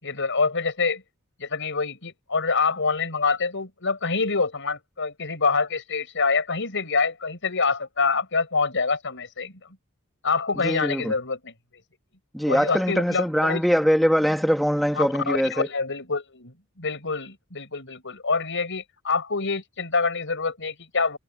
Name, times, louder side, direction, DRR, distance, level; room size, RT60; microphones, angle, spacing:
voice 1, 0.0-1.0 1.4-9.5 10.2-11.5 12.5-13.6 14.9-21.2, left 4 dB, 60° left, 6.1 m, -26 dB
voice 2, 10.6-11.1 12.3-15.7, equal, ahead, 2.3 m, -22 dB
head